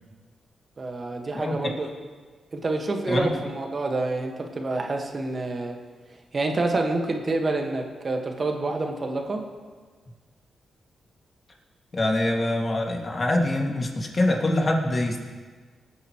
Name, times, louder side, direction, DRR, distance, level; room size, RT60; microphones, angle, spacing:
voice 1, 0.8-1.9 2.5-5.8 6.3-9.4, right 2 dB, 45° right, 3 dB, 1.6 m, -27 dB
voice 2, 11.9-15.2, left 1 dB, 40° left, 0 dB, 2.2 m, -24 dB
20.0 x 9.2 x 3.1 m, 1.4 s
cardioid pair, 70°, 0 cm